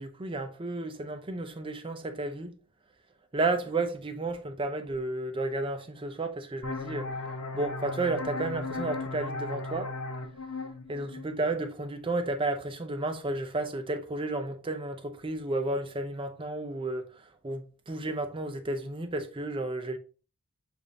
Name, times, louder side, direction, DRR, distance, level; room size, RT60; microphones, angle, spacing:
voice 1, 0.0-2.6 3.3-7.1 7.5-9.9 10.9-17.1 17.4-20.0, right 2 dB, 25° right, 0.5 m, -32 dB
sound 1, 6.6-12.0, left 3 dB, 70° left, 0.8 m, -37 dB
6.6 x 2.5 x 2.7 m
head